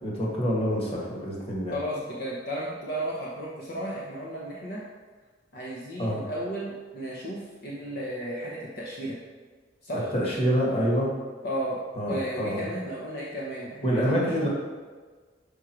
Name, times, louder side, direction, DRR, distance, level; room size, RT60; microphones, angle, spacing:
voice 1, 0.0-1.8 6.0-6.2 10.1-11.1 12.0-12.6 13.8-14.5, equal, 35° left, -4 dB, 1.7 m, -26 dB
voice 2, 1.7-4.8 5.5-9.2 9.8-10.1 11.4-11.8 12.1-14.5, right 1 dB, 60° left, -4 dB, 0.9 m, -34 dB
6.3 x 5.0 x 4.5 m, 1.4 s
head